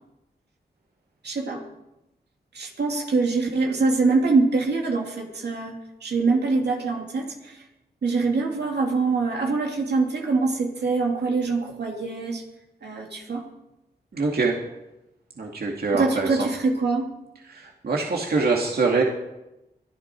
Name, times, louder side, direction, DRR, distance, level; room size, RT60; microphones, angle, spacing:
voice 1, 1.2-1.6 2.5-7.6 8.0-12.4 12.8-13.4 15.9-17.1, right 3 dB, 85° right, 0 dB, 2.7 m, -24 dB
voice 2, 14.1-14.5 15.4-16.5 17.8-19.0, right 4 dB, 70° right, -1 dB, 2.2 m, -23 dB
23.5 x 12.0 x 4.6 m, 0.95 s
cardioid pair, 55°, 17 cm